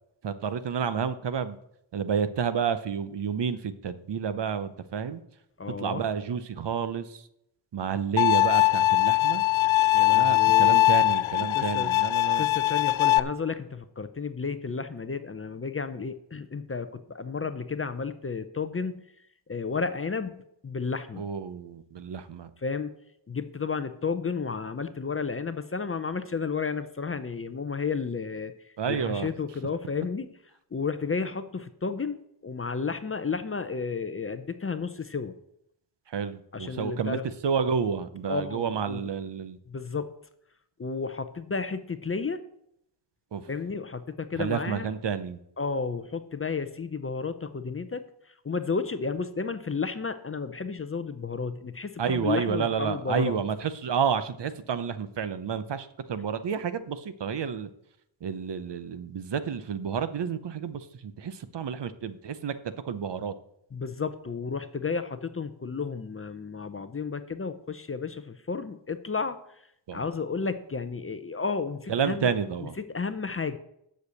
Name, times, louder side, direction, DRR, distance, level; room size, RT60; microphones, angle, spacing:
voice 1, 0.2-1.6 1.9-5.2 5.8-7.2 7.7-9.4 10.1-12.5 21.2-22.5 28.8-29.3 36.1-39.6 43.3-43.4 44.3-45.4 52.0-57.7 58.2-62.5 62.8-63.3 69.9-70.1 71.9-72.7, right 7 dB, 60° right, 13 dB, 0.8 m, -30 dB
voice 2, 5.6-6.0 9.9-10.8 11.5-11.9 12.4-19.0 19.5-21.2 22.6-22.9 23.3-28.5 28.9-30.3 30.7-35.3 36.5-37.3 38.3-39.0 39.7-40.1 40.8-42.4 43.5-44.9 45.6-48.0 48.4-53.4 63.7-69.4 69.9-72.3 72.8-73.6, left 5 dB, 30° left, 11 dB, 0.5 m, -32 dB
Bowed string instrument, 8.2-13.2, left 17 dB, 75° left, 0.5 m, -21 dB
8.0 x 6.5 x 8.3 m, 0.76 s
wide cardioid pair, 165°, 48 cm